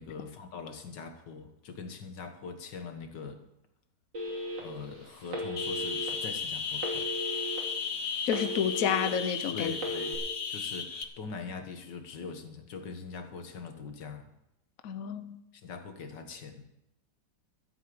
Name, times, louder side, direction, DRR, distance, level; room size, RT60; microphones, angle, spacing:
voice 1, 0.0-3.4 4.6-7.1 9.5-10.2 10.5-14.3 15.6-16.6, left 5 dB, 80° left, 2.0 m, -42 dB
Telephone, 4.1-4.8 5.3-6.1 6.8-7.6 8.0-9.1 9.7-10.2, equal, 90° right, 3.4 m, -35 dB
sound 1, 5.6-11.0, left 6 dB, 40° left, 0.8 m, -35 dB
voice 2, 8.3-9.7 14.8-15.4, left 8 dB, 60° left, 1.0 m, -30 dB
14.0 x 8.0 x 7.7 m
omnidirectional pair, 1.9 m